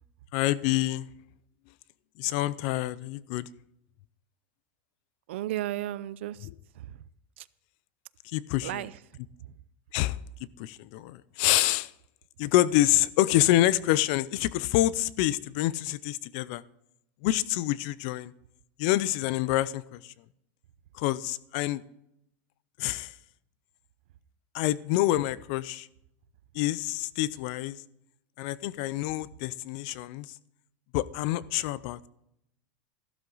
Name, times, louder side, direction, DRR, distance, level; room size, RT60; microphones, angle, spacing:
voice 1, 0.3-1.1 2.2-3.5 8.2-8.8 9.9-10.2 10.6-11.9 12.4-16.6 17.2-18.3 18.8-20.1 20.9-21.8 22.8-23.1 24.5-25.9 26.5-27.8 28.4-30.3 30.9-32.1, left 15 dB, 45° left, 0.5 m, -27 dB
voice 2, 5.3-6.5 6.7-7.0 7.4-7.5 8.6-9.0 9.4-9.6, right 14 dB, 70° right, 0.6 m, -34 dB
15.0 x 12.0 x 4.0 m
supercardioid pair, 175°, 7 cm